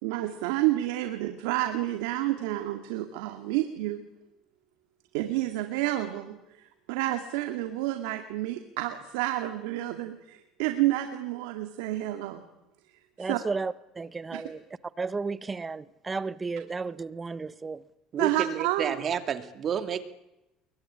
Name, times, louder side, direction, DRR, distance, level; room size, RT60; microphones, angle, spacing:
voice 1, 0.0-4.0 5.1-12.4 13.2-13.4 14.3-14.4 18.2-19.0, right 15 dB, 85° right, 2.2 m, -29 dB
voice 2, 13.2-14.6 15.0-17.8, right 4 dB, 20° right, 1.2 m, -33 dB
voice 3, 18.1-20.0, right 8 dB, 45° right, 2.4 m, -30 dB
23.0 x 23.0 x 10.0 m
supercardioid pair, 100°, 0 cm